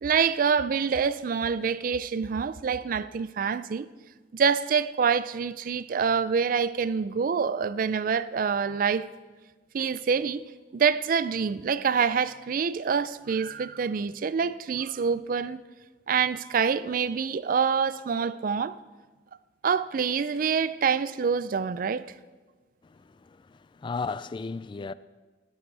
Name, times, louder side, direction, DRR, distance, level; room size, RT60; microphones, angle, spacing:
voice 1, 0.0-3.9 4.3-9.1 9.7-10.4 10.7-15.6 16.1-18.8 19.6-22.1, right 6 dB, 50° right, 0.4 m, -26 dB
voice 2, 22.8-24.9, left 4 dB, 25° left, 0.3 m, -35 dB
17.0 x 12.0 x 3.3 m
head